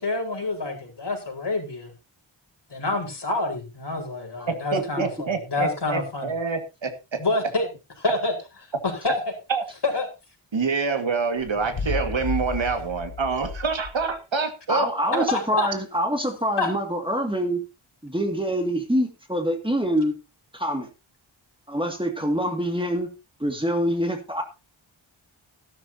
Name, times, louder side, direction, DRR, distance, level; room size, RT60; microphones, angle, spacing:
voice 1, 0.0-1.9 2.7-6.3 7.2-7.7 8.0-8.3 8.8-9.2 9.8-10.1 15.1-15.7 16.6-16.7, left 2 dB, 55° left, 1 dB, 4.8 m, -27 dB
voice 2, 4.5-7.2 9.5-9.6 10.5-15.2, right 4 dB, 70° right, 7 dB, 1.9 m, -27 dB
sound 1, 11.4-14.2, left 4 dB, 85° left, 1.6 m, -33 dB
voice 3, 14.7-17.6 18.0-20.1 20.5-20.9 21.7-23.1 23.4-24.4, equal, 10° right, 4 dB, 2.2 m, -25 dB
14.0 x 12.0 x 2.8 m, 0.27 s
wide cardioid pair, 85°, 48 cm